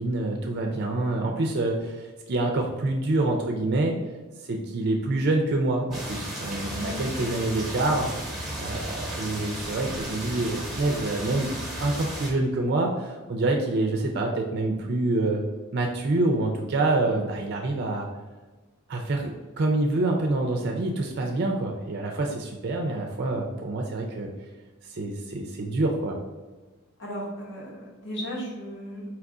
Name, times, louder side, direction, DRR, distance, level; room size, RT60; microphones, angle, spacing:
voice 1, 0.0-4.0 4.5-8.1 8.6-11.5 11.8-15.4 15.7-18.1 18.9-24.3 24.9-26.2, right 2 dB, 50° right, 2 dB, 0.4 m, -26 dB
sound 1, 5.9-12.3, right 1 dB, ahead, 0.8 m, -34 dB
voice 2, 6.8-7.1 17.0-17.3 27.0-29.2, equal, 55° left, -3 dB, 1.1 m, -36 dB
4.5 x 2.4 x 3.7 m, 1.3 s
head